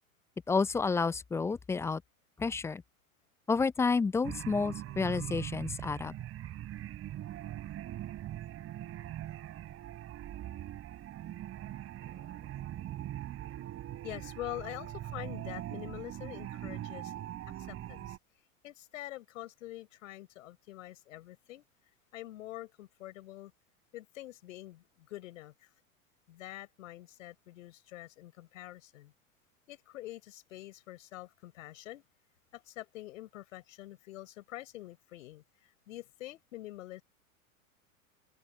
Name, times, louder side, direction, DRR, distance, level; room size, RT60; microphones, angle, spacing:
voice 1, 0.5-2.0 2.4-2.8 3.5-6.1, left 4 dB, 5° left, 0.4 m, -30 dB
sound 1, 4.2-18.2, right 12 dB, 35° right, 3.5 m, -41 dB
voice 2, 12.0-12.5 14.0-18.2 18.6-21.6 22.1-23.5 23.9-25.7 26.3-29.1 29.7-32.0 32.5-37.0, left 15 dB, 65° left, 4.6 m, -46 dB
open air
figure-of-eight pair, 95°, 42 cm